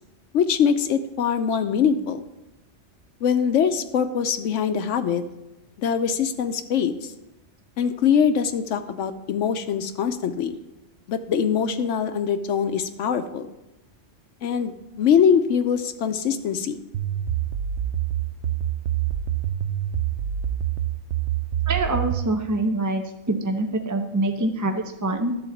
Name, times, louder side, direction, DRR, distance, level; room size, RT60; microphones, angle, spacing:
voice 1, 0.3-2.2 3.2-5.2 5.8-7.1 7.8-10.6 11.1-13.5 14.4-16.8, left 7 dB, 80° left, 9 dB, 1.0 m, -23 dB
sound 1, 16.9-22.3, right 11 dB, 75° right, 0.9 m, -26 dB
voice 2, 21.7-25.3, right 2 dB, 25° right, 5 dB, 0.4 m, -25 dB
11.0 x 4.2 x 7.1 m, 0.95 s
omnidirectional pair, 1.2 m